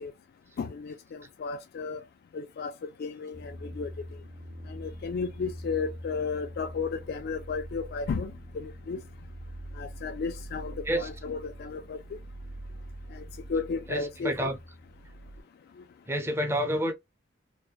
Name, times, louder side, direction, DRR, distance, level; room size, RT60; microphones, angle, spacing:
voice 1, 0.6-2.0 2.3-3.9 4.7-9.0 9.8-12.0 13.1-13.2 13.5-14.5, left 5 dB, 55° left, 0.3 m, -34 dB
sound 1, 3.3-15.4, equal, 55° right, 0.6 m, -44 dB
voice 2, 13.9-14.6 16.1-16.9, equal, 15° right, 0.5 m, -28 dB
2.7 x 2.1 x 2.2 m
head